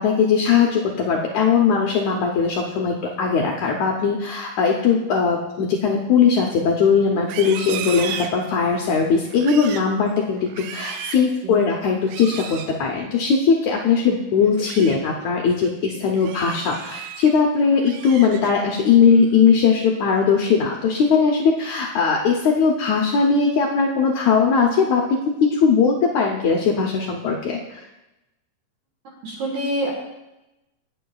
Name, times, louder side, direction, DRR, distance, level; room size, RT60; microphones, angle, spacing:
voice 1, 0.0-25.0 25.4-27.8, left 5 dB, 85° left, 0 dB, 1.6 m, -19 dB
Livestock farm animals working animals, 7.2-8.8 9.3-9.9 10.4-11.3 12.0-12.7 14.4-15.0 15.4-15.7 16.2-17.3 17.7-18.7 19.1-19.5 19.9-20.3, right 8 dB, 85° right, 2.0 m, -35 dB
voice 2, 29.2-29.9, right 1 dB, 60° right, -1 dB, 2.8 m, -25 dB
16.5 x 9.1 x 2.3 m, 0.95 s
omnidirectional pair, 4.5 m